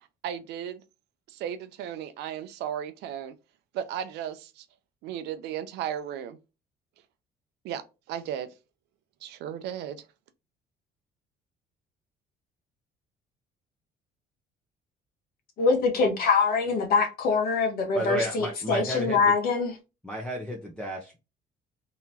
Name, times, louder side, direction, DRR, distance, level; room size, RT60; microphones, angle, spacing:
voice 1, 0.2-0.8 1.3-3.3 3.7-4.7 5.0-6.4 7.6-8.5 9.2-10.1, right 9 dB, 85° right, 0.6 m, -35 dB
voice 2, 15.6-19.8, left 4 dB, 60° left, 1.2 m, -24 dB
voice 3, 17.9-19.2 20.0-21.2, left 1 dB, 5° left, 0.8 m, -32 dB
3.8 x 3.0 x 2.8 m
cardioid pair, 110°, 17 cm